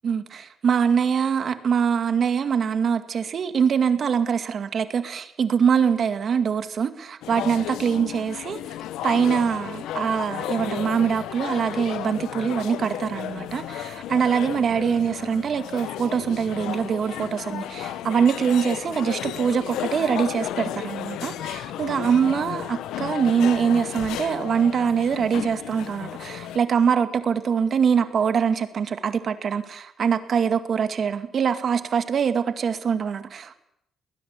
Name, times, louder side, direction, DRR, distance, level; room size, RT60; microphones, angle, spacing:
voice 1, 0.0-8.6 9.0-33.5, right 7 dB, 55° right, 9 dB, 2.1 m, -23 dB
sound 1, 7.2-26.6, left 12 dB, 90° left, 1.1 m, -33 dB
20.5 x 20.0 x 8.3 m, 0.76 s
cardioid pair, 90°, 0 cm